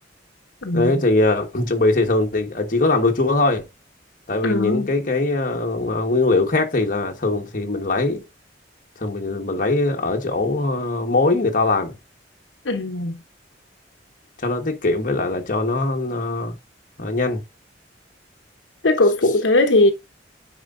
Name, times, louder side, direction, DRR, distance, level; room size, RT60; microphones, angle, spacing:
voice 1, 0.7-3.6 4.3-8.2 9.0-11.9 14.4-16.5 17.0-17.4, left 2 dB, 45° left, 1.3 m, -21 dB
voice 2, 4.4-4.9 12.7-13.2 18.8-19.9, left 2 dB, 80° left, 0.9 m, -19 dB
9.3 x 4.6 x 2.5 m
head